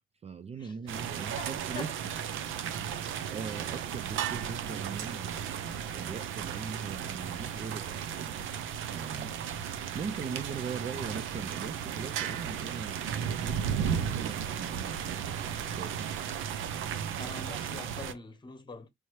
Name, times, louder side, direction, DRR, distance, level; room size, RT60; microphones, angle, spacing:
voice 1, 0.0-1.9 2.6-16.1, right 5 dB, 30° right, 0.4 m, -41 dB
sound 1, 0.9-18.1, right 8 dB, 80° right, 0.7 m, -35 dB
voice 2, 1.1-1.5 1.7-1.9 17.2-18.9, left 3 dB, 25° left, 1.3 m, -44 dB
4.7 x 2.7 x 3.2 m
cardioid pair, 90°, 20 cm